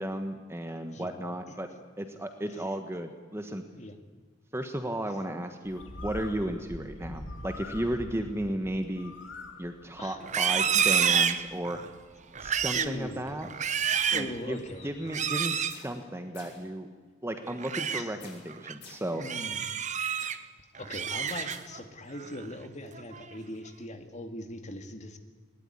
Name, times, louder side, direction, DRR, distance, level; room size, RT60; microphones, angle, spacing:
voice 1, 0.0-1.7 2.0-3.6 4.5-9.1 9.6-11.8 12.4-13.5 14.1-14.6 14.8-16.9 17.2-19.2, right 1 dB, 15° right, 6 dB, 1.2 m, -34 dB
voice 2, 0.9-1.2 2.5-2.8 3.7-4.0 10.0-10.2 10.6-10.8 12.7-13.4 14.1-14.9 15.3-15.6 17.9-18.2 19.2-19.6 20.2-20.4 20.8-25.2, left 1 dB, 40° left, 6 dB, 2.1 m, -41 dB
Bird, 5.6-15.2, left 1 dB, 90° left, 2.6 m, -46 dB
Livestock farm animals working animals, 10.2-11.9 12.3-13.0 13.4-14.3 15.1-15.8 17.4-18.0 18.5-18.7 19.2-20.4 20.7-21.8 22.2-22.5 22.9-23.4, right 7 dB, 40° right, 0.9 m, -28 dB
sound 1, 15.7-16.1 16.3-16.7 18.2-19.2 21.3-21.6, left 5 dB, 60° left, 5.8 m, -50 dB
21.0 x 19.0 x 9.8 m, 1.4 s
head